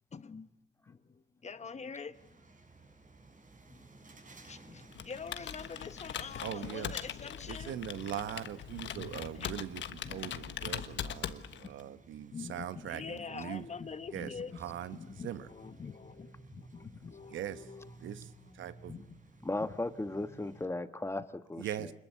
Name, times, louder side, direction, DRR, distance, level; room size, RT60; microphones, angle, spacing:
voice 1, 0.1-0.5 0.9-2.4 3.7-3.9 4.4-7.8 9.0-9.1 9.4-9.5 12.3-14.6 14.9-17.9 18.9-19.1 19.6-19.7, left 5 dB, 35° left, 1.4 m, -45 dB
sound 1, 2.1-20.7, right 2 dB, 40° right, 5.6 m, -56 dB
Computer keyboard, 4.9-11.8, left 10 dB, 70° left, 1.3 m, -41 dB
voice 2, 6.4-7.0 7.5-13.7 14.1-15.5 17.3-17.7 18.0-19.0 21.6-21.9, right 11 dB, 75° right, 1.2 m, -41 dB
voice 3, 19.4-21.9, left 2 dB, 15° left, 1.5 m, -36 dB
26.0 x 21.5 x 8.4 m
cardioid pair, 90°, 20 cm